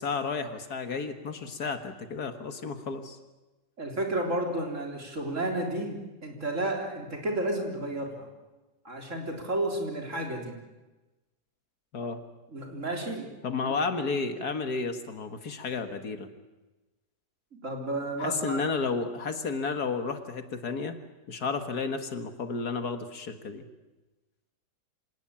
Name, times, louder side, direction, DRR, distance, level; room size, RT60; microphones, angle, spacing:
voice 1, 0.0-3.2 11.9-12.2 13.4-16.3 18.2-21.0 21.3-23.6, left 4 dB, 70° left, 8 dB, 2.1 m, -32 dB
voice 2, 3.8-8.3 8.8-10.6 12.5-13.3 13.6-13.7 17.5-18.6, right 1 dB, 45° right, 2 dB, 4.1 m, -32 dB
26.0 x 18.5 x 8.8 m, 1.1 s
omnidirectional pair, 1.8 m